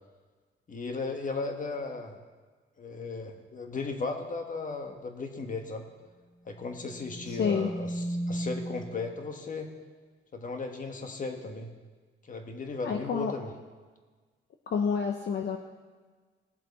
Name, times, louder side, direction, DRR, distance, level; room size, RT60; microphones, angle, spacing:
voice 1, 0.7-2.2 2.8-5.8 6.4-9.7 10.3-11.7 12.2-13.5, left 3 dB, 40° left, 4 dB, 1.5 m, -36 dB
sound 1, 6.7-9.2, right 1 dB, 20° right, 2.5 m, -36 dB
voice 2, 7.3-7.7 12.8-13.3 14.7-15.6, left 6 dB, 60° left, 3 dB, 0.8 m, -29 dB
19.5 x 7.5 x 4.3 m, 1.4 s
cardioid pair, 130°, 21 cm